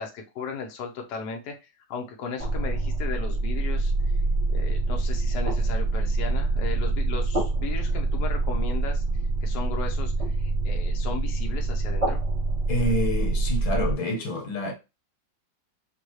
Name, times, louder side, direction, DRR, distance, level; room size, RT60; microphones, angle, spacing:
voice 1, 0.0-4.2 4.5-9.0 9.4-12.2, left 5 dB, 65° left, 1.3 m, -36 dB
sound 1, 2.4-13.9, right 2 dB, 20° right, 1.6 m, -25 dB
voice 2, 12.7-14.7, left 1 dB, 80° left, 2.0 m, -27 dB
5.4 x 2.8 x 3.1 m
omnidirectional pair, 2.2 m